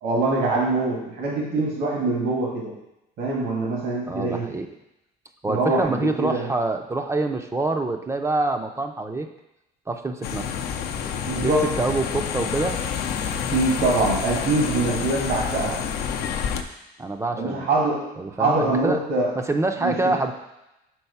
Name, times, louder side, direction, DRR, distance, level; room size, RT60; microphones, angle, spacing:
voice 1, 0.0-2.7 3.2-4.5 5.5-6.5 11.3-11.7 13.5-15.8 17.3-18.1 18.4-19.3 19.8-20.1, right 2 dB, 75° right, -4 dB, 1.7 m, -24 dB
voice 2, 4.1-4.7 5.4-9.3 9.9-10.5 11.4-12.8 15.6-15.8 17.0-17.7 18.2-19.0 19.4-20.3, right 2 dB, 15° right, 5 dB, 0.5 m, -26 dB
sound 1, 10.2-16.6, left 7 dB, 70° left, 0.6 m, -28 dB
4.6 x 4.0 x 5.5 m, 0.90 s
cardioid pair, 110°, 17 cm